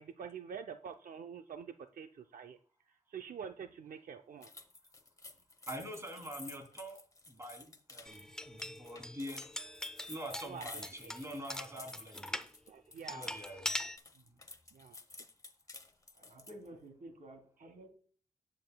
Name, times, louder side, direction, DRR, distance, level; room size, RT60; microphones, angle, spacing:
voice 1, 0.0-2.6 3.1-4.5 10.5-10.6 12.7-13.3 14.7-15.0, right 7 dB, 80° right, 6 dB, 0.6 m, -46 dB
sound 1, 4.4-13.5 13.8-16.7, left 3 dB, 25° left, 1.0 m, -52 dB
voice 2, 5.7-7.0 7.3-9.5 10.1-12.4 13.1-13.7, equal, 20° right, 3 dB, 3.1 m, -45 dB
sound 2, 8.0-12.5 13.1-14.0, left 1 dB, 5° left, 0.7 m, -42 dB
voice 3, 16.1-17.9, right 1 dB, 65° right, 4 dB, 3.2 m, -52 dB
18.5 x 7.5 x 2.3 m, 0.43 s
wide cardioid pair, 145°, 14 cm